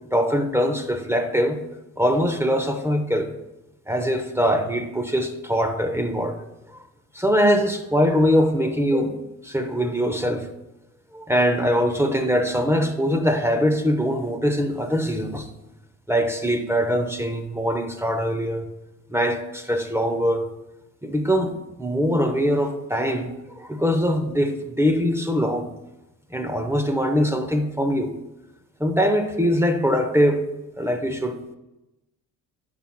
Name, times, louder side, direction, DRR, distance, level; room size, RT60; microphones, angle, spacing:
voice 1, 0.1-1.6 2.0-3.3 3.9-6.4 7.1-9.1 9.4-10.5 11.1-15.5 16.1-18.7 19.1-20.5 21.0-21.5 21.8-25.7 26.3-28.1 28.8-30.5 30.8-31.4, equal, 5° right, 5 dB, 0.8 m, -22 dB
10.0 x 5.9 x 2.2 m, 0.95 s
hypercardioid pair, 45°, 45 cm